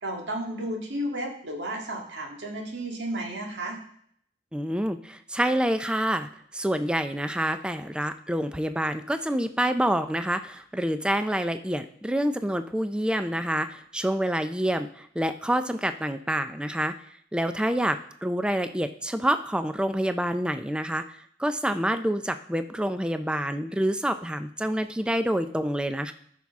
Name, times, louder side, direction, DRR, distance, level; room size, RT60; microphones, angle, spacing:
voice 1, 0.0-3.8, right 1 dB, 70° right, 1 dB, 1.9 m, -33 dB
voice 2, 4.5-16.9 17.3-26.1, right 1 dB, 5° right, 10 dB, 0.4 m, -27 dB
13.5 x 6.0 x 3.6 m, 0.66 s
head